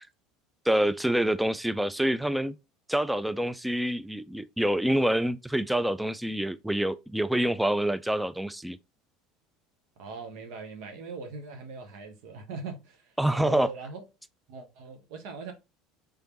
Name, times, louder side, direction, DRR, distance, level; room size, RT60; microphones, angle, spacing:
voice 1, 0.7-2.5 2.9-8.8 13.2-13.7, right 1 dB, 5° right, 0.4 m, -26 dB
voice 2, 10.0-14.0 14.5-15.5, right 4 dB, 65° right, 0.9 m, -40 dB
3.7 x 3.3 x 3.0 m
hypercardioid pair, 80°, 0 cm